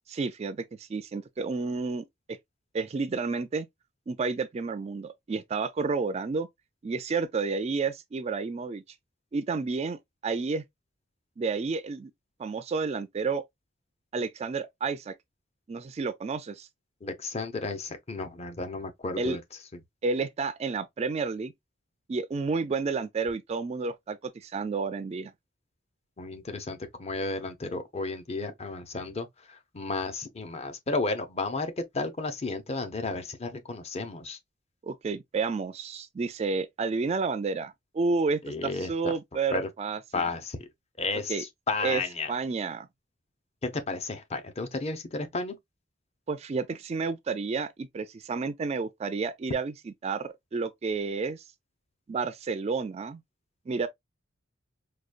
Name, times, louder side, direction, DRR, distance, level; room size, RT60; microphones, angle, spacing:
voice 1, 0.1-2.4 2.7-3.7 4.1-6.5 6.8-8.8 9.3-10.6 11.4-12.1 12.4-13.4 14.1-15.1 15.7-16.7 19.2-19.4 20.0-21.5 22.1-25.3 34.8-40.0 41.3-41.4 41.8-42.0 42.3-42.9 46.3-49.7 50.0-51.4 52.1-53.2 53.7-53.9, right 4 dB, 30° right, 0.3 m, -30 dB
voice 2, 17.0-19.4 26.2-34.4 38.4-39.2 39.5-39.7 40.1-40.7 41.0-42.3 43.6-45.6, left 3 dB, 30° left, 0.7 m, -33 dB
4.9 x 2.2 x 2.4 m
head